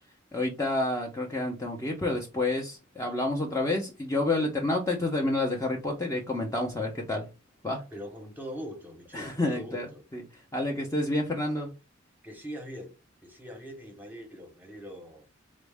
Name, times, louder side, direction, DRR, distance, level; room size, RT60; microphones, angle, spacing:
voice 1, 0.3-7.3 7.6-7.8 9.1-9.9 10.1-10.2 10.5-11.7, left 2 dB, 15° left, 0.6 m, -29 dB
voice 2, 7.9-10.0 12.2-12.9 13.2-15.3, equal, 10° right, 0.9 m, -42 dB
4.0 x 2.1 x 3.3 m
head